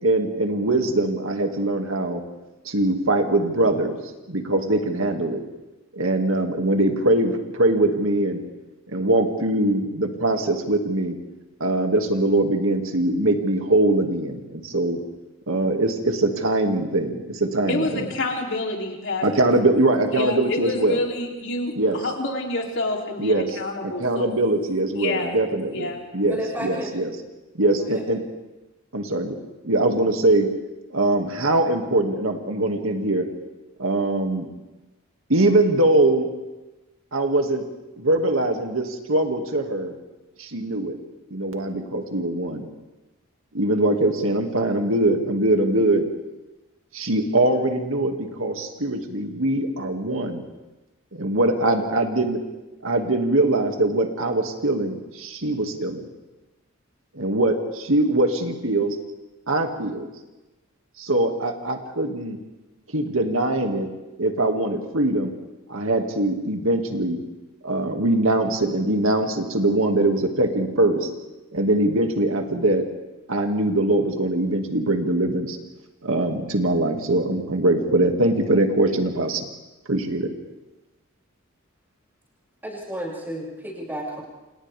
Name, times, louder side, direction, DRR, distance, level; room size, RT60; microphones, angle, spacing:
voice 1, 0.0-2.2 2.6-4.0 4.3-5.4 5.9-8.4 8.9-11.2 11.6-15.0 15.5-18.0 19.2-21.0 21.8-22.0 23.2-23.5 23.8-27.1 27.5-28.2 28.9-29.4 29.6-30.5 30.9-33.3 33.8-34.5 35.3-36.3 37.1-37.7 38.0-39.9 40.4-41.0 41.3-42.7 43.5-46.1 46.9-50.4 51.2-52.4 52.8-56.0 57.1-59.0 59.5-60.1 61.0-62.4 62.9-63.9 64.2-65.3 65.7-67.2 67.6-71.1 71.5-72.8 73.3-75.6 76.0-79.5 79.9-80.3, right 2 dB, 75° right, 4 dB, 2.4 m, -22 dB
voice 2, 17.7-19.5 20.1-24.3 25.0-25.4 25.7-26.0, left 2 dB, 60° left, 0 dB, 3.5 m, -28 dB
voice 3, 26.3-26.9 27.8-28.0 82.6-84.2, right 1 dB, 10° right, -4 dB, 7.0 m, -32 dB
29.5 x 27.5 x 3.6 m, 1.1 s
head